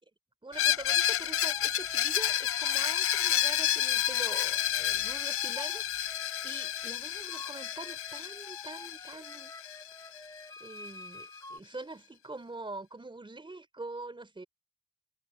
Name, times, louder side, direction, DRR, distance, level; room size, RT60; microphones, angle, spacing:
voice 1, 0.4-6.2 6.4-9.5 9.9-10.2 10.6-14.4, right 2 dB, 15° right, 4.3 m, -44 dB
Screech, 0.5-10.2, left 11 dB, 50° left, 0.5 m, -30 dB
sound 1, 1.3-6.9 7.3-11.6, left 2 dB, 10° left, 2.6 m, -48 dB
cardioid pair, 110°, 30 cm